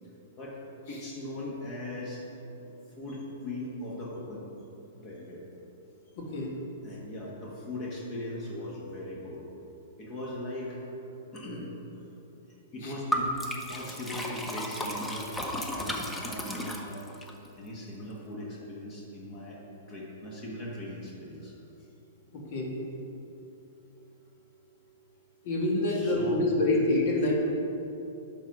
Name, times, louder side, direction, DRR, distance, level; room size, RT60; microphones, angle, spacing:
voice 1, 0.9-2.2 2.6-4.5 5.0-5.4 6.8-9.4 10.0-10.8 11.3-11.7 12.7-13.4 13.7-17.0 17.6-19.6 19.9-21.5 25.9-26.4, left 1 dB, 35° left, -4 dB, 1.6 m, -39 dB
voice 2, 6.2-6.5 12.8-12.9 22.3-22.8 25.4-27.4, left 2 dB, 55° left, -1 dB, 1.9 m, -27 dB
Liquid, 13.1-17.3, equal, 10° left, 0.7 m, -34 dB
10.0 x 4.0 x 6.0 m, 3.0 s
hypercardioid pair, 140°, 0 cm